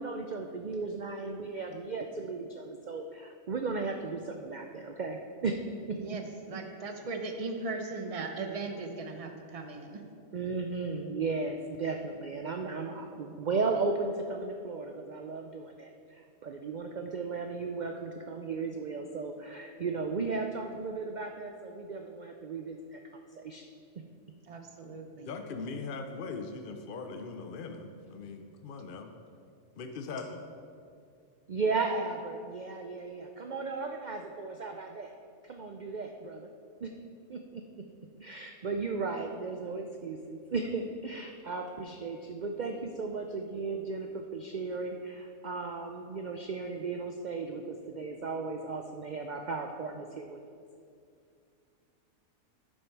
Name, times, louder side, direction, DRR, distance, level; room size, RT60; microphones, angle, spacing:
voice 1, 0.0-5.6 5.9-6.0 10.3-23.0 23.4-23.6 24.0-24.1 31.5-35.1 35.4-36.5 36.8-36.9 37.3-37.6 38.2-50.4, right 4 dB, 70° right, 4 dB, 0.4 m, -35 dB
voice 2, 6.0-10.0 24.4-25.3, right 3 dB, 30° right, 5 dB, 0.7 m, -38 dB
voice 3, 25.2-29.1 29.8-30.5, left 4 dB, 55° left, 5 dB, 0.6 m, -40 dB
11.5 x 6.4 x 4.6 m, 2.4 s
omnidirectional pair, 1.5 m